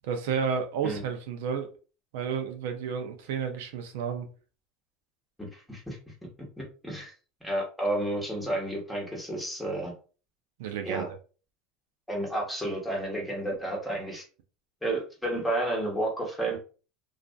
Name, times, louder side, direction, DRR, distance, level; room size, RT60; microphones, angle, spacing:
voice 1, 0.0-1.7 2.1-4.3 10.6-11.0, right 6 dB, 80° right, 6 dB, 0.4 m, -31 dB
voice 2, 5.4-6.0 6.6-7.1 7.4-9.9 10.8-11.1 12.1-14.2 14.8-16.6, right 1 dB, 5° left, -2 dB, 1.1 m, -31 dB
2.4 x 2.4 x 2.2 m, 0.36 s
supercardioid pair, 110°, 0 cm